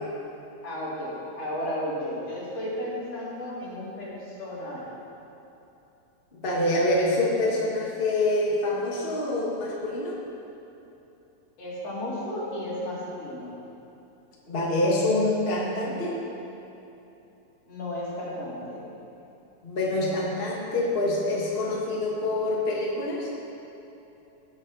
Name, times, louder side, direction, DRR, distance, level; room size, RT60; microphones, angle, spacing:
voice 1, 0.6-4.8 11.6-13.6 17.7-18.8, left 1 dB, 55° left, -7 dB, 3.8 m, -33 dB
voice 2, 6.3-10.2 14.5-16.2 19.6-23.3, left 1 dB, 25° left, -5 dB, 1.3 m, -26 dB
19.0 x 7.5 x 4.0 m, 2.9 s
omnidirectional pair, 3.4 m